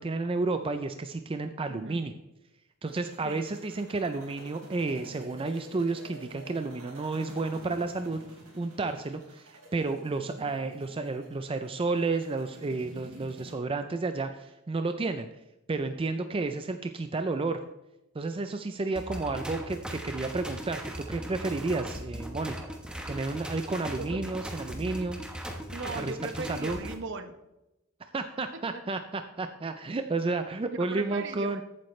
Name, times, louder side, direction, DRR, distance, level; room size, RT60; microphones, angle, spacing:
voice 1, 0.0-2.1 2.8-8.2 8.6-15.3 15.7-17.6 18.1-20.8 21.1-22.6 23.1-25.2 25.9-26.1 26.5-26.8 28.1-31.6, right 3 dB, 25° right, 8 dB, 0.4 m, -31 dB
voice 2, 1.7-2.0 3.2-3.4 24.0-24.1 25.7-27.3 30.8-31.6, right 3 dB, 60° right, 8 dB, 1.0 m, -38 dB
sound 1, 2.9-13.5, right 1 dB, 85° right, 3.8 m, -49 dB
sound 2, 18.9-26.9, right 1 dB, 5° right, 1.1 m, -38 dB
14.5 x 8.5 x 3.2 m, 0.93 s
head